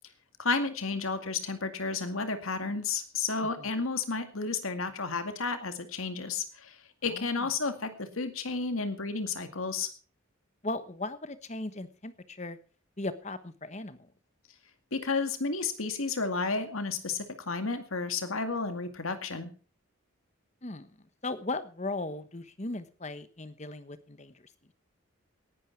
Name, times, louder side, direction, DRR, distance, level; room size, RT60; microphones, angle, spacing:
voice 1, 0.4-9.9 14.9-19.5, left 4 dB, 85° left, 8 dB, 2.2 m, -32 dB
voice 2, 7.1-7.5 10.6-12.6 13.0-14.1 20.6-20.9 21.2-24.3, left 2 dB, 35° left, 12 dB, 1.2 m, -37 dB
18.5 x 11.0 x 4.6 m, 0.39 s
head